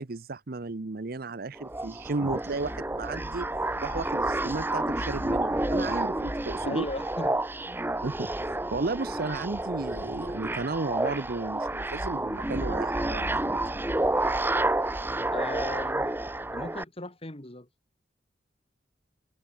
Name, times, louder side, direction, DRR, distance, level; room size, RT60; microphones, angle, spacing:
voice 1, 0.0-3.5 3.8-6.8 8.0-13.6, right 3 dB, 55° right, 0.8 m, -34 dB
sound 1, 1.6-16.8, right 1 dB, 10° right, 1.0 m, -30 dB
voice 2, 6.6-7.4 15.3-16.1 16.5-17.7, left 2 dB, 35° left, 2.5 m, -37 dB
head